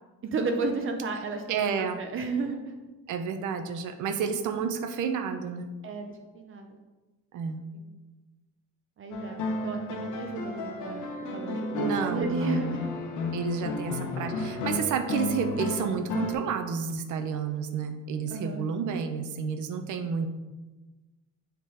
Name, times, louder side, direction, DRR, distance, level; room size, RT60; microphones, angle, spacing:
voice 1, 0.2-2.7 5.8-6.8 7.7-7.9 9.0-12.8 15.1-15.3 18.3-18.6, right 4 dB, 45° right, 4 dB, 0.6 m, -33 dB
voice 2, 1.5-2.0 3.1-5.7 7.3-7.6 11.8-12.6 13.3-20.3, right 6 dB, 85° right, 8 dB, 0.7 m, -30 dB
sound 1, 9.1-16.3, left 2 dB, 85° left, 0.9 m, -33 dB
6.8 x 3.9 x 4.8 m, 1.2 s
cardioid pair, 160°, 30 cm